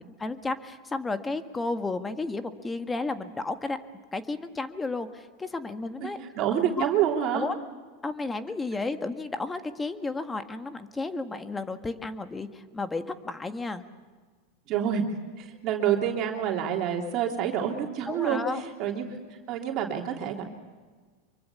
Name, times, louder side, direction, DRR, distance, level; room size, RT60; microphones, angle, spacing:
voice 1, 0.1-3.8 4.1-6.2 6.8-6.9 7.3-7.6 8.0-13.8 18.1-18.6, left 3 dB, 15° left, 9 dB, 1.7 m, -32 dB
voice 2, 6.0-7.5 14.7-15.0 15.4-19.2 19.5-20.4, right 9 dB, 50° right, 1 dB, 3.2 m, -28 dB
25.0 x 24.0 x 7.1 m, 1.5 s
hypercardioid pair, 100°, 0 cm